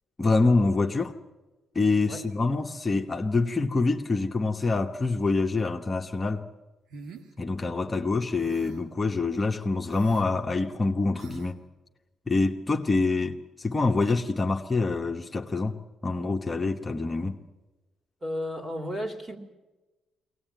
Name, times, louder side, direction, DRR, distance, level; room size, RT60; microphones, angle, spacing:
voice 1, 0.2-1.2 1.7-6.4 7.4-11.6 12.3-17.4, left 3 dB, 25° left, 3 dB, 1.2 m, -26 dB
sound 1, 6.9-7.3 8.3-8.9 9.9-10.3 11.2-11.5, right 3 dB, 85° right, 2.0 m, -45 dB
voice 2, 7.7-8.1 18.2-19.4, left 1 dB, 30° right, 4 dB, 3.1 m, -34 dB
22.5 x 18.5 x 9.1 m, 1.2 s
cardioid pair, 90°, 0 cm